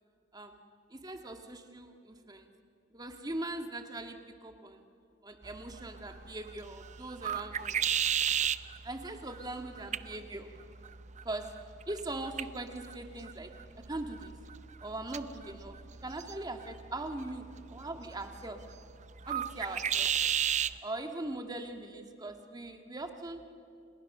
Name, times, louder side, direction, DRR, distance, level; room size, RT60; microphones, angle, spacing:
voice 1, 0.9-2.5 2.9-4.8 5.2-7.8 8.8-10.5 11.2-11.5 11.9-13.5 13.9-14.4 14.8-17.5 17.7-18.6 19.3-20.1 20.8-23.4, right 2 dB, 20° right, 5 dB, 1.9 m, -41 dB
sound 1, 5.4-20.8, right 8 dB, 40° right, 0.7 m, -36 dB
30.0 x 29.5 x 6.7 m, 2.5 s
head